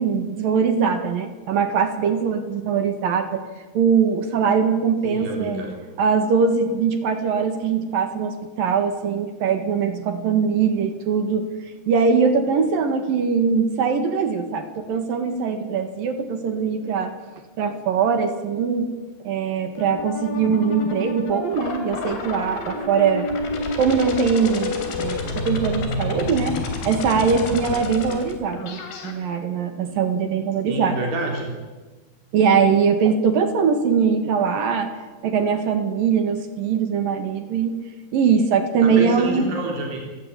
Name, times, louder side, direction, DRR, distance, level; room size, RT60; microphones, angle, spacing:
voice 1, 0.0-3.4 3.7-5.6 6.0-11.5 11.9-17.1 17.6-18.9 19.2-23.3 23.8-26.6 26.8-31.0 32.3-34.9 35.2-37.7 38.1-39.5, right 6 dB, 65° right, 8 dB, 3.4 m, -21 dB
voice 2, 5.0-5.7 30.7-31.5 38.8-40.0, right 2 dB, 90° right, 1 dB, 5.8 m, -28 dB
sound 1, 19.8-29.1, left 2 dB, 70° left, 5.0 m, -29 dB
29.0 x 16.5 x 10.0 m, 1.3 s
omnidirectional pair, 4.7 m